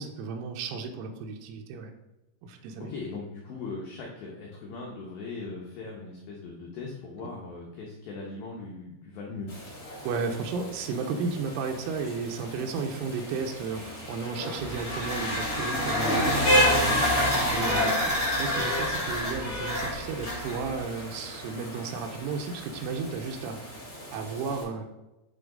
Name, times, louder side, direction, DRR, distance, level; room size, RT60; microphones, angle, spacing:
voice 1, 0.0-1.9 2.4-2.9 7.2-7.3 10.0-17.9 18.4-23.8 24.1-24.9, right 4 dB, 90° right, 3 dB, 3.1 m, -34 dB
voice 2, 2.5-9.5 17.9-18.1, left 3 dB, 90° left, -2 dB, 2.0 m, -39 dB
Rain, 9.5-24.6, equal, 25° left, 2.3 m, -32 dB
sound 1, 14.6-20.8, left 1 dB, 20° right, 1.5 m, -29 dB
10.0 x 3.9 x 3.8 m, 0.97 s
omnidirectional pair, 5.5 m